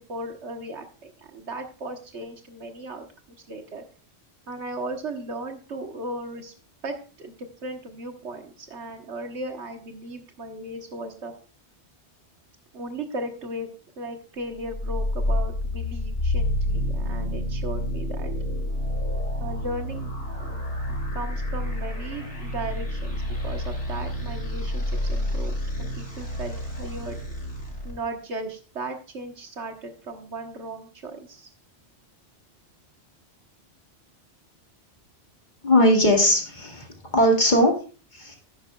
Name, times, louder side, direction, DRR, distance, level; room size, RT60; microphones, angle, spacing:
voice 1, 0.1-3.1 3.5-3.8 4.5-6.5 6.8-11.3 12.7-13.7 14.0-18.3 19.4-20.1 20.4-20.6 20.9-27.2 27.8-31.5, right 2 dB, 75° right, 5 dB, 1.6 m, -36 dB
sound 1, 14.7-27.9, left 1 dB, 90° left, 5.4 m, -29 dB
voice 2, 35.6-36.9 37.1-37.7 38.1-38.4, left 1 dB, 40° left, 1 dB, 2.1 m, -19 dB
11.0 x 9.8 x 2.3 m, 0.38 s
omnidirectional pair, 1.2 m